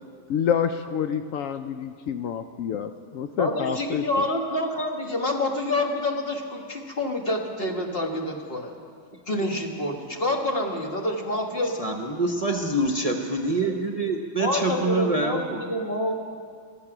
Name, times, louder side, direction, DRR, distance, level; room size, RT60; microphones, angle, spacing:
voice 1, 0.3-4.0, left 8 dB, 75° left, 9 dB, 0.9 m, -28 dB
voice 2, 3.4-8.7 9.3-11.9 14.4-16.1, left 1 dB, 45° left, 2 dB, 1.6 m, -27 dB
voice 3, 11.8-15.6, right 2 dB, 30° right, 3 dB, 0.8 m, -26 dB
15.5 x 13.5 x 6.0 m, 2.1 s
omnidirectional pair, 1.4 m